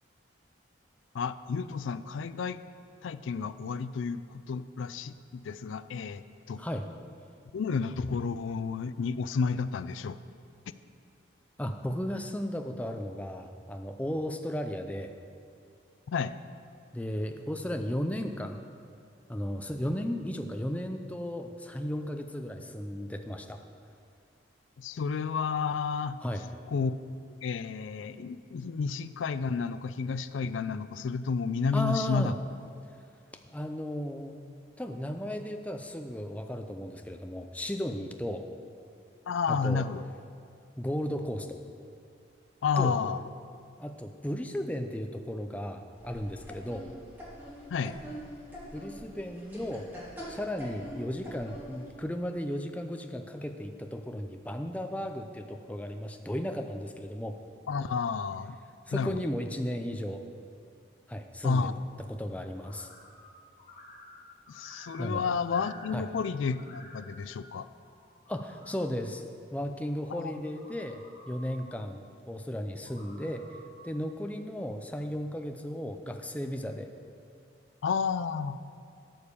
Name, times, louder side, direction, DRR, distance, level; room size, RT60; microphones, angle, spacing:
voice 1, 1.1-2.6 3.0-6.7 7.5-10.2 16.1-16.3 24.8-26.2 26.7-26.9 27.4-32.3 39.3-40.0 42.6-43.2 47.7-48.0 57.7-58.6 58.9-59.2 61.4-61.8 64.5-67.7 70.1-70.3 77.8-78.6, left 5 dB, 85° left, 13 dB, 0.4 m, -31 dB
voice 2, 11.6-15.1 16.9-18.6 19.3-23.6 26.2-26.4 31.7-32.3 33.5-34.3 34.8-38.5 39.5-39.8 40.8-41.6 42.8-43.0 43.8-46.9 48.7-49.9 50.3-57.4 58.9-60.2 61.1-61.7 62.1-62.9 65.0-65.2 65.9-66.0 68.3-69.2 69.5-73.4 73.8-76.9, equal, 5° left, 5 dB, 0.5 m, -35 dB
sound 1, 46.0-51.9, equal, 10° right, 2.3 m, -44 dB
sound 2, 62.6-63.3 63.6-66.2 66.5-67.3 67.9-68.9 69.8-71.6 72.7-73.9, left 1 dB, 40° left, 2.2 m, -52 dB
13.0 x 5.1 x 6.8 m, 2.4 s
head